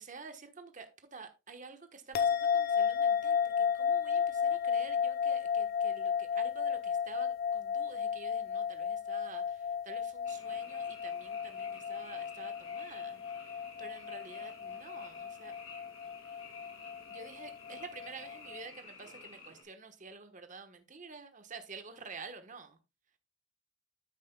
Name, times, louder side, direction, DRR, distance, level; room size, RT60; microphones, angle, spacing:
voice 1, 0.0-13.2 13.5-15.5 17.1-22.8, right 4 dB, 35° right, 1.2 m, -49 dB
sound 1, 2.1-18.7, left 7 dB, 45° left, 0.7 m, -33 dB
Frog, 10.2-19.6, left 4 dB, 80° left, 2.7 m, -53 dB
12.5 x 6.3 x 2.2 m
head